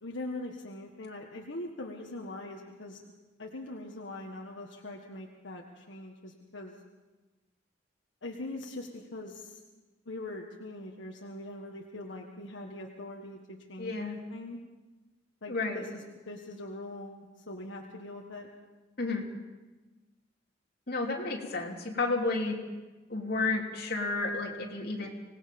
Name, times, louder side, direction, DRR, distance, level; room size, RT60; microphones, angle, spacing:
voice 1, 0.0-3.0 3.4-6.8 8.2-9.6 10.0-14.6 15.4-18.5, left 2 dB, 75° left, 0 dB, 1.6 m, -42 dB
voice 2, 13.8-14.2 15.5-15.8 19.0-19.2 20.9-22.6 23.1-25.1, left 3 dB, 55° left, -1 dB, 3.2 m, -31 dB
25.5 x 19.0 x 5.4 m, 1.2 s
head